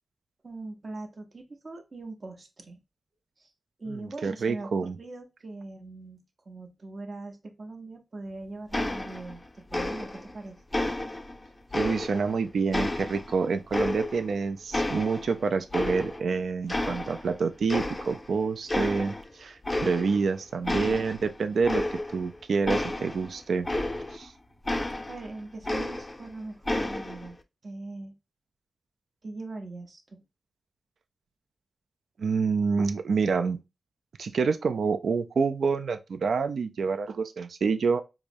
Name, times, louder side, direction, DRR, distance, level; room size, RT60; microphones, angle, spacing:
voice 1, 0.4-2.8 3.4-3.5 3.8-10.6 16.9-17.0 25.1-27.4 27.6-28.1 29.2-30.2, right 2 dB, 45° right, 0.8 m, -41 dB
voice 2, 4.0-5.0 11.7-21.8 22.1-23.7 24.1-24.3 32.2-33.6 34.2-38.0, right 5 dB, 80° right, 0.4 m, -27 dB
sound 1, 8.7-9.4 9.7-10.3 10.7-12.3 12.7-14.4 14.7-16.3 16.7-17.4 17.7-18.3 18.7-19.3 19.6-20.3 20.6-24.3 24.7-26.3 26.6-27.3, left 1 dB, 20° left, 0.4 m, -31 dB
4.7 x 2.0 x 2.6 m
wide cardioid pair, 90°, 0 cm